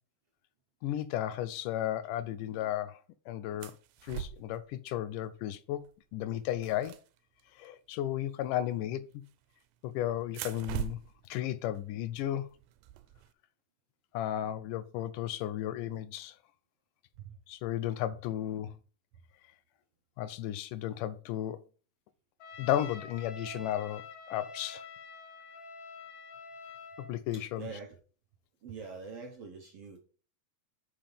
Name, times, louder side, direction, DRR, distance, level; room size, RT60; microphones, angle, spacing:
voice 1, 0.8-3.0 3.3-3.7 4.0-5.9 6.1-7.0 7.6-9.2 9.8-11.0 11.3-12.5 14.1-16.4 17.5-18.7 20.2-21.6 22.6-24.0 24.3-24.9 27.1-27.7, left 12 dB, 80° left, 2.0 m, -34 dB
sound 1, 3.6-4.6 5.7-5.9 6.2-7.7 9.1-9.7 10.2-13.3, right 10 dB, 85° right, 2.3 m, -43 dB
Trumpet, 22.4-27.1, left 4 dB, 60° left, 1.7 m, -47 dB
voice 2, 27.3-28.0 28.6-30.0, right 5 dB, 65° right, 1.5 m, -44 dB
6.7 x 5.6 x 5.0 m
omnidirectional pair, 3.8 m